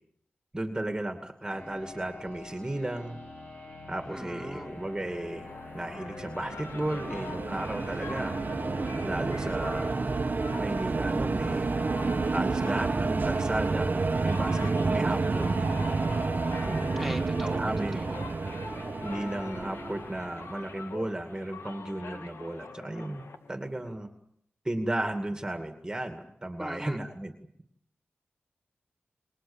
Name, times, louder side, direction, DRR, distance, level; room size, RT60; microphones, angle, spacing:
voice 1, 0.5-3.2 3.9-5.5 5.7-8.3 9.0-10.1 10.6-11.7 12.3-13.9 14.2-14.6 14.9-15.7 16.7-17.2 17.5-18.0 19.0-23.2 23.5-24.1 24.6-27.3, right 1 dB, 15° right, 5 dB, 2.4 m, -34 dB
sound 1, 1.4-9.8, left 2 dB, 45° left, 7.0 m, -46 dB
voice 2, 4.1-4.7 17.0-18.2 26.6-27.0, equal, 5° left, 1 dB, 3.4 m, -39 dB
sound 2, 4.6-23.9, left 4 dB, 85° left, 2.0 m, -45 dB
sound 3, 6.1-20.6, right 3 dB, 45° right, 1.3 m, -30 dB
28.5 x 22.5 x 7.3 m, 0.72 s
wide cardioid pair, 80°, 4 cm